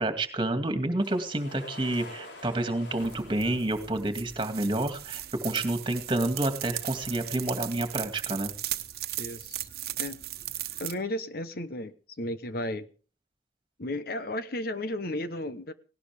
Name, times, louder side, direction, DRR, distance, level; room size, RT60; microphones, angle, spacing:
voice 1, 0.0-8.5, right 1 dB, 25° right, 2.3 m, -29 dB
sound 1, 1.0-4.3 5.2-7.4, left 2 dB, 85° left, 4.2 m, -48 dB
sound 2, 3.0-10.9, right 13 dB, 55° right, 1.2 m, -37 dB
voice 2, 9.2-9.7 10.0-10.2 10.8-12.9 13.8-15.7, left 1 dB, 55° left, 1.0 m, -34 dB
18.5 x 17.5 x 3.5 m
head